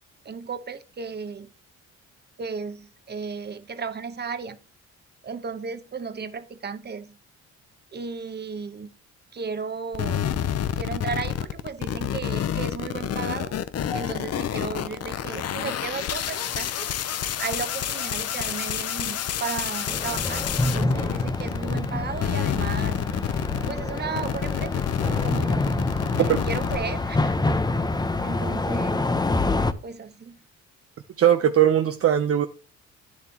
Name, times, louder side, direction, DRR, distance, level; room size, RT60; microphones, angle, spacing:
voice 1, 0.2-1.5 2.4-4.6 5.2-7.2 7.9-8.9 9.3-10.3 10.7-13.6 13.9-16.9 17.4-23.1 23.7-25.6 26.2-27.3 28.2-29.1 29.8-30.4, right 5 dB, 35° right, 1.1 m, -34 dB
sound 1, 9.9-21.9 22.2-26.8, left 10 dB, 55° left, 0.8 m, -28 dB
sound 2, 13.9-18.3 18.5-18.9 19.6-19.7, left 2 dB, 80° left, 2.0 m, -47 dB
sound 3, 19.9-29.7, left 2 dB, 15° left, 0.8 m, -26 dB
voice 2, 31.2-32.5, right 10 dB, 50° right, 0.7 m, -19 dB
10.5 x 7.3 x 2.9 m
cardioid pair, 90°, 30 cm